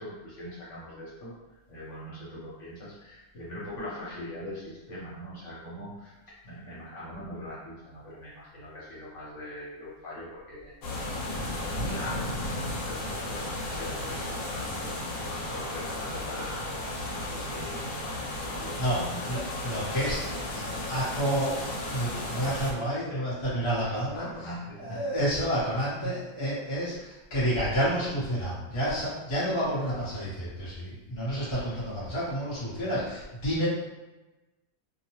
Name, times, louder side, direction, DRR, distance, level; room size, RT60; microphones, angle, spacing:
voice 1, 0.0-20.3 23.1-23.3 23.8-25.0 26.0-26.1 26.9-27.1, equal, 60° left, -8 dB, 1.2 m, -42 dB
sound 1, 10.8-22.7, left 1 dB, 80° left, 1.1 m, -34 dB
voice 2, 18.8-24.3 24.8-33.7, equal, 25° left, -9 dB, 0.9 m, -30 dB
2.7 x 2.1 x 2.9 m, 1.1 s
omnidirectional pair, 1.5 m